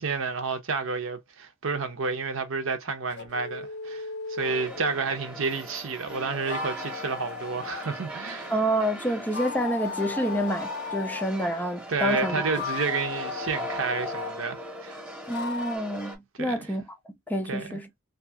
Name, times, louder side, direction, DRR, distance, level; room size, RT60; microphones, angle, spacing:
voice 1, 0.0-8.5 11.9-15.0 16.4-16.7 17.5-17.8, right 4 dB, 65° right, 0.7 m, -30 dB
sound 1, 3.1-5.0 6.1-7.9 9.2-11.3 12.4-14.4 15.3-15.8, left 5 dB, 55° left, 0.6 m, -36 dB
sound 2, 4.4-16.2, right 1 dB, 10° right, 1.0 m, -38 dB
voice 2, 8.5-12.4 15.3-17.0 17.3-17.9, equal, 10° left, 0.4 m, -28 dB
2.6 x 2.4 x 2.7 m
head